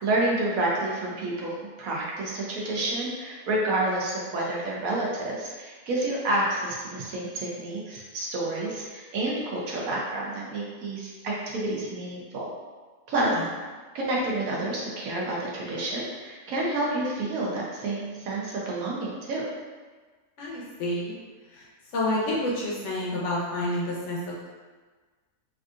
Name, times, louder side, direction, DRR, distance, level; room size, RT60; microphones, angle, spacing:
voice 1, 0.0-12.5 13.1-13.3 13.9-19.4, right 2 dB, 70° right, -4 dB, 1.0 m, -29 dB
voice 2, 20.4-21.1 21.5-21.6 21.9-24.5, left 1 dB, 60° left, -5 dB, 0.9 m, -29 dB
3.5 x 2.4 x 2.4 m, 1.4 s
omnidirectional pair, 1.6 m